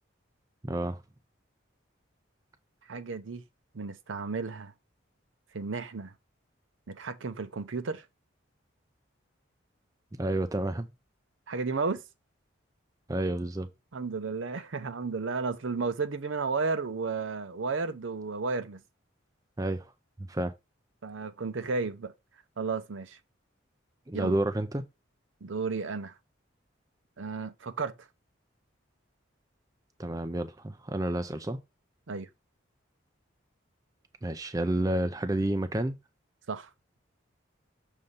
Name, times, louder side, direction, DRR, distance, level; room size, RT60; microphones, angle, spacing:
voice 1, 0.6-1.0 10.1-10.9 13.1-13.7 19.6-19.8 20.3-20.5 24.1-24.8 30.0-31.6 34.2-36.0, right 1 dB, 20° right, 0.4 m, -30 dB
voice 2, 2.9-3.4 3.7-4.7 5.5-6.1 6.9-8.1 11.5-12.0 13.9-18.8 21.0-22.1 22.6-23.2 24.1-24.4 25.4-26.1 27.2-28.1 32.1-32.3 36.5-36.7, right 4 dB, 75° right, 0.6 m, -33 dB
6.5 x 2.8 x 5.4 m
head